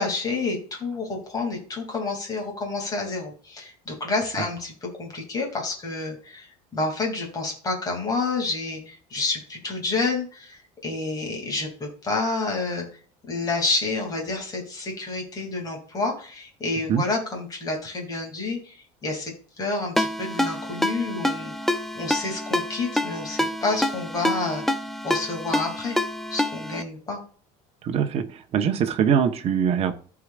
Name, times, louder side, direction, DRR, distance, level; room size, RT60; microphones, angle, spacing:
voice 1, 0.0-12.9 13.2-24.6 25.0-26.0 26.3-27.2, left 3 dB, 20° left, 1 dB, 2.7 m, -29 dB
Ringtone, 20.0-26.8, left 1 dB, ahead, 0.5 m, -27 dB
voice 2, 27.8-28.2 28.5-29.9, right 8 dB, 40° right, 6 dB, 1.1 m, -22 dB
14.5 x 4.9 x 2.5 m, 0.42 s
cardioid pair, 160°, 16 cm